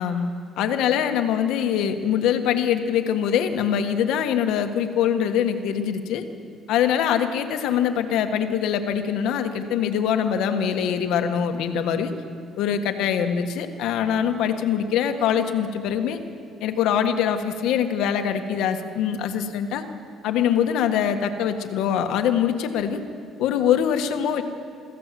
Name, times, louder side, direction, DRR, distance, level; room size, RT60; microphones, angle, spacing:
voice 1, 0.0-6.2 6.7-12.1 12.6-16.2 16.6-19.8 20.2-23.0 23.4-24.4, left 8 dB, 80° left, 7 dB, 1.5 m, -23 dB
23.5 x 15.0 x 7.6 m, 2.3 s
cardioid pair, 120°, 0 cm